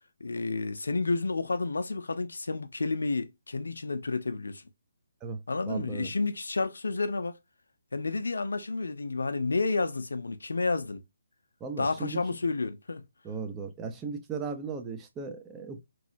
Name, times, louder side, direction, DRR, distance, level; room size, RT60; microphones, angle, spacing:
voice 1, 0.2-4.6 5.5-7.4 7.9-11.0 11.8-13.0, left 3 dB, 70° left, 0.5 m, -30 dB
voice 2, 5.7-6.1 11.6-12.2 13.2-15.9, right 5 dB, 15° right, 0.5 m, -36 dB
3.1 x 2.7 x 2.6 m
figure-of-eight pair, 140°, 0 cm